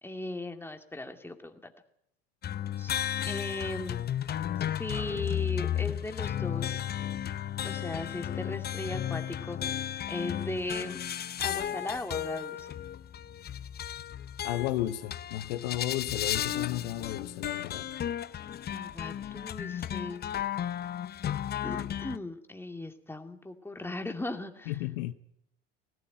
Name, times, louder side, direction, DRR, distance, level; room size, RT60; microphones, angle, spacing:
voice 1, 0.0-1.7 2.8-2.9 3.3-4.0 4.7-6.8 7.6-11.0 11.4-12.7 18.7-20.3 21.6-24.7, left 2 dB, 5° left, 5 dB, 2.5 m, -38 dB
sound 1, 2.4-22.2, left 10 dB, 35° left, 0.7 m, -34 dB
voice 2, 14.4-17.9 24.7-25.1, left 14 dB, 70° left, 12 dB, 1.0 m, -33 dB
18.0 x 16.5 x 9.2 m, 0.75 s
hypercardioid pair, 65°, 30 cm